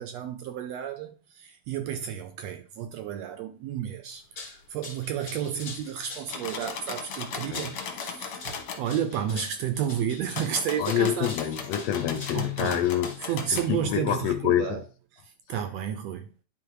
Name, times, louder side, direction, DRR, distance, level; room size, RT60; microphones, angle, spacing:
voice 1, 0.0-11.3 12.3-12.8 13.3-14.8 15.2-16.3, right 9 dB, 75° right, 1.6 m, -32 dB
sound 1, 4.1-14.0, left 4 dB, 40° left, 2.0 m, -44 dB
sound 2, 6.3-8.8 10.3-13.7, left 6 dB, 60° left, 1.8 m, -37 dB
voice 2, 10.8-14.8, left 11 dB, 75° left, 1.7 m, -27 dB
9.8 x 3.8 x 4.7 m
omnidirectional pair, 3.4 m